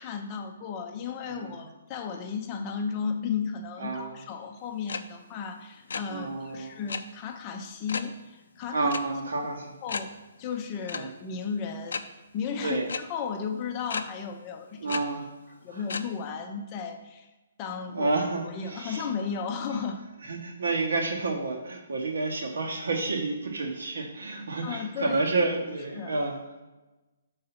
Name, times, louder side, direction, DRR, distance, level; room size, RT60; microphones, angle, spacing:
voice 1, 0.0-8.9 9.8-10.1 10.4-12.1 12.3-15.0 15.6-17.3 17.6-18.1 18.5-20.0 24.6-25.5 25.9-26.2, left 6 dB, 20° left, 5 dB, 0.5 m, -34 dB
voice 2, 3.8-4.2 6.1-6.8 8.7-9.7 10.9-11.1 12.6-12.9 14.8-15.3 15.7-15.8 17.9-19.1 20.3-26.4, right 3 dB, 85° right, 2 dB, 1.3 m, -30 dB
sound 1, 4.9-5.0 5.3-5.5 5.7-6.0 6.9-7.0 7.9-8.1 8.9-9.0 9.4-9.5 9.9-10.0 10.9-11.0 11.9-12.0 12.9-13.0 13.9-14.0 14.9-15.0 15.9-16.0, left 5 dB, 75° left, 0.4 m, -32 dB
5.4 x 3.8 x 5.6 m, 1.1 s
hypercardioid pair, 170°, 0 cm